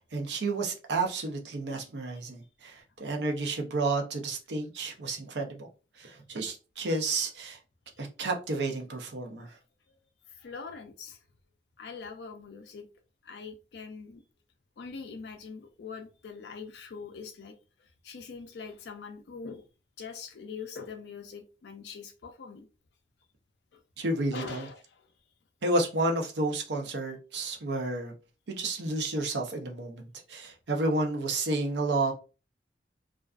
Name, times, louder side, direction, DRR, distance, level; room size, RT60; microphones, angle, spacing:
voice 1, 0.1-5.7 6.0-7.6 8.0-9.5 24.0-24.7 25.6-28.1 28.5-32.1, right 2 dB, 75° right, 0.6 m, -31 dB
voice 2, 10.3-11.2 11.8-12.9 13.2-14.2 14.8-19.6 20.0-22.7 23.7-23.8 24.3-25.1, left 5 dB, 70° left, 0.4 m, -43 dB
2.4 x 2.3 x 2.3 m
head